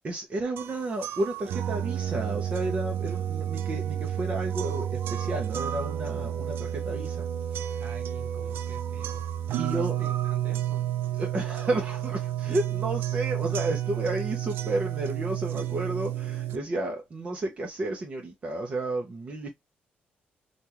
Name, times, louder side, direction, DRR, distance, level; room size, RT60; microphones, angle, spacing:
voice 1, 0.0-7.8 9.6-10.0 11.2-19.5, right 2 dB, 35° right, 0.8 m, -32 dB
sound 1, 0.6-16.6, right 11 dB, 85° right, 0.4 m, -31 dB
voice 2, 7.8-9.2 9.5-10.9, right 4 dB, 50° right, 1.1 m, -47 dB
3.5 x 2.5 x 2.9 m
cardioid pair, 135°, 4 cm